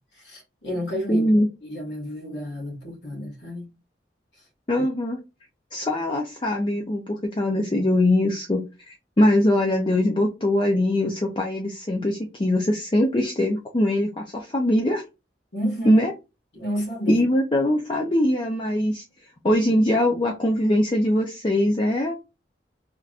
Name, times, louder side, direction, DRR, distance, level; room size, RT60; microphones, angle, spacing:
voice 1, 0.2-1.2 1.6-3.7 15.5-16.0 16.5-17.2, equal, 75° left, 1.9 m, -30 dB
voice 2, 1.1-1.5 4.7-5.2 5.7-15.0 15.9-16.1 17.1-19.0 19.4-22.2, left 1 dB, 30° left, 0.5 m, -22 dB
3.4 x 3.0 x 2.4 m
head